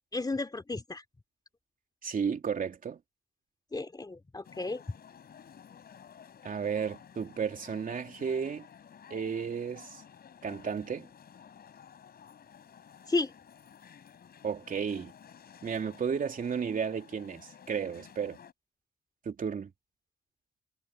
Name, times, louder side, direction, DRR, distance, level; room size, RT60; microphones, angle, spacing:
voice 1, 0.1-1.0 3.7-4.8 13.1-13.3, left 3 dB, 20° left, 2.8 m, -33 dB
voice 2, 2.0-3.0 6.4-8.7 9.1-10.0 10.4-11.1 14.4-15.1 15.6-18.4 19.2-19.7, right 6 dB, 50° right, 3.3 m, -33 dB
sound 1, 4.4-18.5, left 8 dB, 60° left, 7.5 m, -53 dB
cardioid pair, 75°, 18 cm